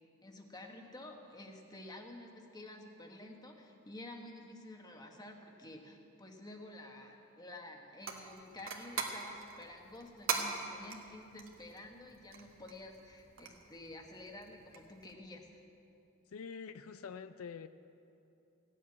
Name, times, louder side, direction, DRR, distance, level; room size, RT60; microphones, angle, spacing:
voice 1, 0.2-15.6, left 1 dB, 20° left, 3 dB, 1.2 m, -50 dB
sound 1, 8.0-15.1, right 5 dB, 65° right, 1.4 m, -43 dB
voice 2, 16.3-17.7, left 6 dB, 80° left, 11 dB, 0.4 m, -45 dB
16.0 x 7.5 x 9.5 m, 2.8 s
head